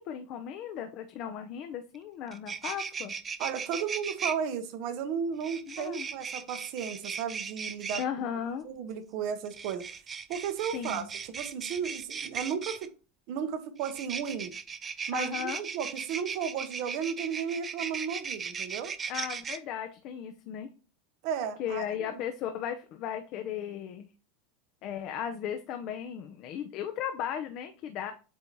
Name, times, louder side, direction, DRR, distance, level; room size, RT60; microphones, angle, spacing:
voice 1, 0.0-3.1 5.7-6.1 8.0-8.7 10.7-11.1 15.1-15.6 19.1-20.7 21.6-24.1 24.8-28.1, left 9 dB, 45° left, 0.6 m, -36 dB
sound 1, 1.9-2.0 2.3-4.3 5.4-8.0 9.5-12.9 13.8-19.6, right 6 dB, 20° right, 0.4 m, -37 dB
voice 2, 3.4-8.3 8.6-9.9 10.3-12.9 13.3-14.5 15.1-18.9 21.2-21.8 22.1-22.2, right 7 dB, 50° right, 1.0 m, -34 dB
8.0 x 2.8 x 4.6 m
supercardioid pair, 155°, 0 cm